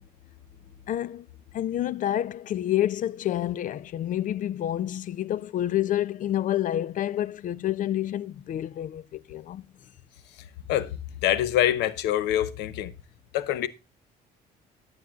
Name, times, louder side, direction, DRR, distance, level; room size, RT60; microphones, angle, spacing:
voice 1, 0.9-1.3 1.5-9.6, left 12 dB, 50° left, 0.5 m, -28 dB
voice 2, 10.7-12.9 13.3-13.7, left 12 dB, 90° left, 0.9 m, -25 dB
14.5 x 7.9 x 2.4 m
cardioid pair, 110°, 17 cm